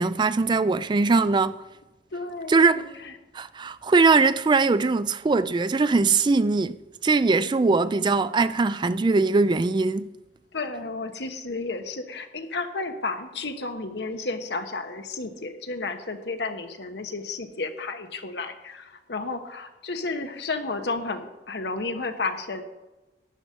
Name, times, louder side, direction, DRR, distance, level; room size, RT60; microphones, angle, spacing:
voice 1, 0.0-1.6 2.5-2.8 3.3-6.8 7.0-10.1, right 3 dB, 25° right, 0.3 m, -21 dB
voice 2, 2.1-3.1 10.5-22.6, left 3 dB, 70° left, 1.1 m, -32 dB
12.0 x 9.0 x 5.3 m
head